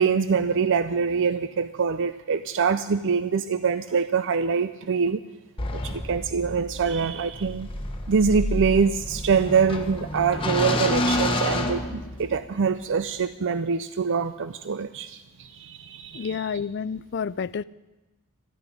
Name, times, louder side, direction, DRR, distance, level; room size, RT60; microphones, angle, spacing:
voice 1, 0.0-5.2 5.7-7.7 8.1-16.4, right 5 dB, 60° right, 12 dB, 0.5 m, -24 dB
sound 1, 5.6-12.5, left 1 dB, 25° left, 1.5 m, -29 dB
voice 2, 16.1-17.6, left 6 dB, 50° left, 19 dB, 0.4 m, -30 dB
13.5 x 10.5 x 10.0 m, 1.1 s
head